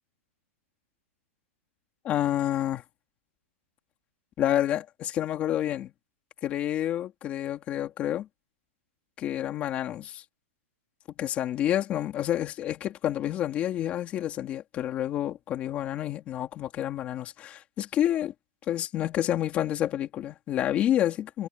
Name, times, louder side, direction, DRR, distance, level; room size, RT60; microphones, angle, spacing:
voice 1, 2.0-2.8 4.4-5.9 6.4-8.3 9.2-10.2 11.2-18.3 18.7-21.5, left 11 dB, 15° left, 3.1 m, -29 dB
supercardioid pair, 180°, 8 cm